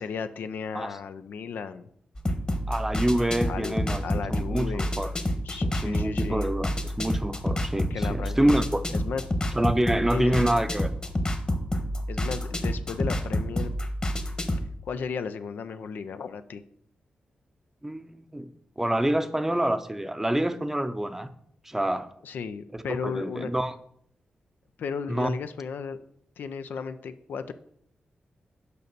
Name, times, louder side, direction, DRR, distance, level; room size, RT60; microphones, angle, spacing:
voice 1, 0.0-1.9 3.5-3.7 4.0-4.9 5.4-6.5 7.9-8.6 8.9-9.2 10.1-10.5 12.1-13.7 14.8-16.6 22.2-23.5 24.8-26.0 26.4-27.5, left 6 dB, 80° left, 0.5 m, -34 dB
sound 1, 2.2-14.7, left 1 dB, 25° left, 1.2 m, -29 dB
voice 2, 2.7-4.0 4.3-5.1 5.5-9.0 9.5-10.9 17.8-18.5 18.8-21.3 21.6-22.1 22.7-23.7 25.1-25.3, right 1 dB, 10° right, 0.6 m, -27 dB
6.6 x 5.4 x 6.7 m
cardioid pair, 85°, 3 cm